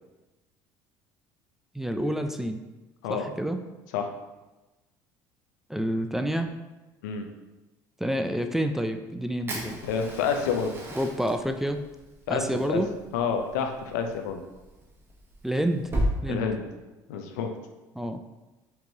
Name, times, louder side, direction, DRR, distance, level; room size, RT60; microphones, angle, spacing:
voice 1, 1.7-2.6 3.1-3.6 5.7-6.5 8.0-9.8 10.9-11.8 12.3-12.9 15.4-15.9 16.2-16.5 18.0-18.2, equal, 5° right, 6 dB, 0.3 m, -28 dB
Fire, 9.5-16.1, equal, 25° right, 0.9 m, -35 dB
voice 2, 9.9-10.8 12.3-12.8 13.1-14.4 16.3-16.6 17.1-17.5, left 6 dB, 85° left, 5 dB, 0.5 m, -28 dB
4.5 x 3.0 x 2.7 m, 1.1 s
supercardioid pair, 85°, 9 cm